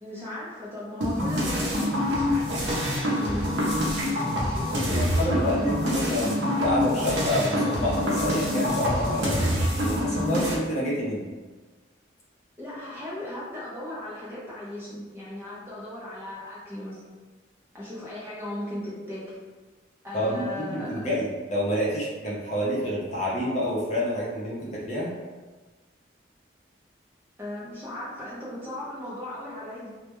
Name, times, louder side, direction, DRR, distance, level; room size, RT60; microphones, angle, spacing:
voice 1, 0.0-6.0 10.0-10.4 12.6-17.0 17.7-19.2 20.0-21.0 27.4-29.9, left 1 dB, 10° right, -8 dB, 0.5 m, -37 dB
sound 1, 1.0-10.5, left 1 dB, 70° right, 0.6 m, -26 dB
voice 2, 4.8-11.3 20.1-25.1, equal, 35° left, -6 dB, 0.6 m, -28 dB
2.2 x 2.1 x 2.9 m, 1.3 s
head